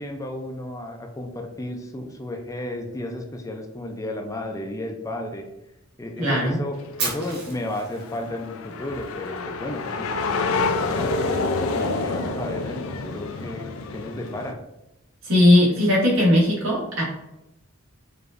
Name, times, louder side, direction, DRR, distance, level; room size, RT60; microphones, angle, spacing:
voice 1, 0.0-5.4 6.0-11.1 11.7-14.6, left 1 dB, 15° left, 3 dB, 0.3 m, -33 dB
voice 2, 6.2-6.6 15.2-17.0, left 1 dB, 75° right, -5 dB, 1.5 m, -18 dB
sound 1, 6.8-14.5, left 3 dB, 80° left, 0.4 m, -28 dB
Fire, 7.0-9.0, right 3 dB, 50° right, 1.1 m, -32 dB
4.8 x 2.5 x 2.4 m, 0.93 s
head